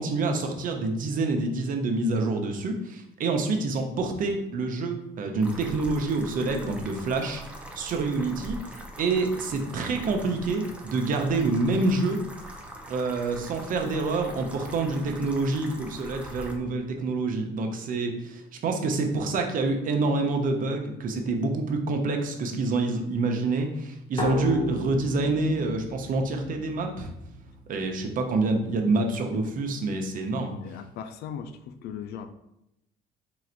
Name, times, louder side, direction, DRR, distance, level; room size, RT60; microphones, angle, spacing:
voice 1, 0.0-7.4 7.8-12.2 12.9-27.1 27.7-30.6, right 3 dB, 55° right, 4 dB, 0.7 m, -27 dB
sound 1, 5.4-16.6, right 1 dB, 5° right, 0.6 m, -42 dB
sound 2, 24.2-27.7, left 2 dB, 25° left, 0.8 m, -34 dB
voice 2, 30.6-32.3, left 8 dB, 70° left, 10 dB, 0.4 m, -38 dB
3.9 x 2.5 x 4.4 m, 0.84 s
cardioid pair, 110°, 17 cm